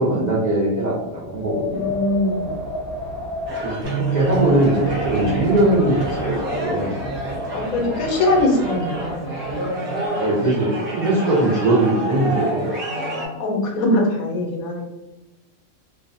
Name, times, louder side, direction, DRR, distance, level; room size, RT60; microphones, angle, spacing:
voice 1, 0.0-1.9 3.6-7.0 10.1-12.8, right 1 dB, 80° right, -6 dB, 0.4 m, -20 dB
Wind, 1.1-9.5, left 2 dB, ahead, 0.4 m, -31 dB
voice 2, 1.7-2.6 7.5-9.3 12.9-14.8, left 1 dB, 90° left, 0 dB, 1.1 m, -22 dB
sound 1, 3.5-13.3, right 1 dB, 55° right, 0.7 m, -29 dB
Bass guitar, 3.8-10.1, right 10 dB, 65° left, 0.8 m, -31 dB
2.6 x 2.1 x 2.5 m, 1.0 s
omnidirectional pair, 1.4 m